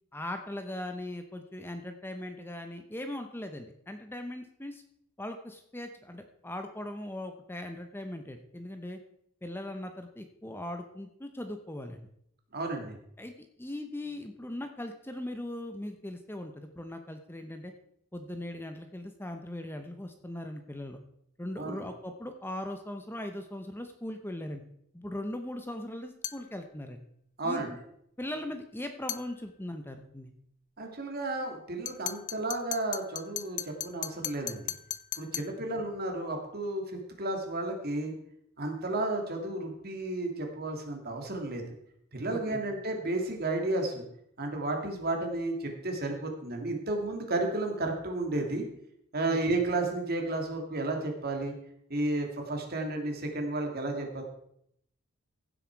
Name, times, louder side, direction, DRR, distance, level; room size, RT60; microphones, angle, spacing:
voice 1, 0.1-4.8 5.2-9.0 9.4-12.1 13.2-13.3 13.6-17.7 18.1-21.0 21.4-24.6 24.9-27.0 27.4-27.8 28.2-30.3 42.3-42.6 49.3-49.4, left 1 dB, 10° left, 6 dB, 0.8 m, -39 dB
voice 2, 12.5-13.0 21.6-21.9 27.4-27.7 30.8-34.7 35.2-38.1 38.6-41.6 42.1-44.0 44.4-48.6 49.1-51.6 51.9-54.3, right 2 dB, 45° right, 3 dB, 2.4 m, -32 dB
sound 1, 26.2-26.5 29.1-29.3 31.9-35.6, left 10 dB, 35° left, 0.5 m, -37 dB
15.5 x 7.8 x 4.6 m, 0.73 s
head